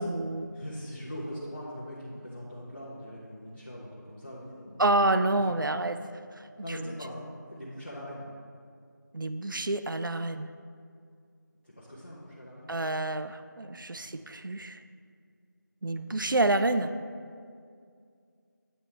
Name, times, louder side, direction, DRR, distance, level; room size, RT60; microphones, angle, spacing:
voice 1, 0.0-0.5 4.8-6.0 6.4-6.5 9.1-10.5 12.7-14.8 15.8-16.9, right 2 dB, 85° right, 10 dB, 0.5 m, -28 dB
voice 2, 0.5-5.7 6.6-8.3 11.6-12.7 13.9-14.2, equal, 35° left, -8 dB, 0.8 m, -41 dB
9.0 x 5.4 x 3.3 m, 2.2 s
figure-of-eight pair, 175°, 11 cm